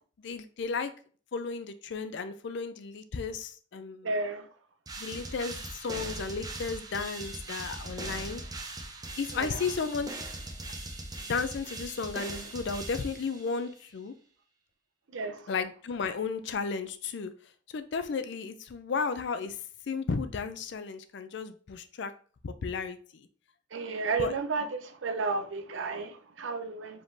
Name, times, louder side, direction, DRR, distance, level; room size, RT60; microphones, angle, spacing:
voice 1, 0.2-0.9 1.3-4.1 5.0-8.4 9.2-10.1 11.3-14.1 15.5-17.3 17.7-19.6 19.9-22.1 22.4-23.3 24.2-24.3, left 5 dB, 60° left, 0.4 m, -34 dB
voice 2, 4.0-4.5 9.3-9.6 15.1-15.5 23.7-27.0, right 3 dB, 75° right, 0.6 m, -33 dB
sound 1, 4.9-13.7, right 2 dB, 20° right, 0.7 m, -40 dB
4.9 x 3.6 x 2.6 m
head